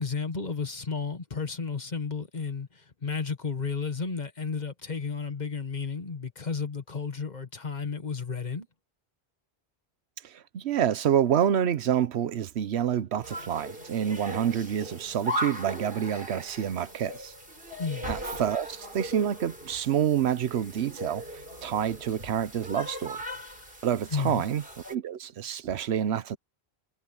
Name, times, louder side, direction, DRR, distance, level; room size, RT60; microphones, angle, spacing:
voice 1, 0.0-8.7 17.8-18.1 24.1-24.4, left 5 dB, 45° left, 1.5 m, -32 dB
voice 2, 10.2-17.3 18.1-21.2 21.6-23.2 23.8-24.6 24.9-26.4, right 9 dB, 90° right, 1.0 m, -28 dB
sound 1, 13.2-24.9, equal, 60° right, 7.9 m, -39 dB
omnidirectional pair, 1.1 m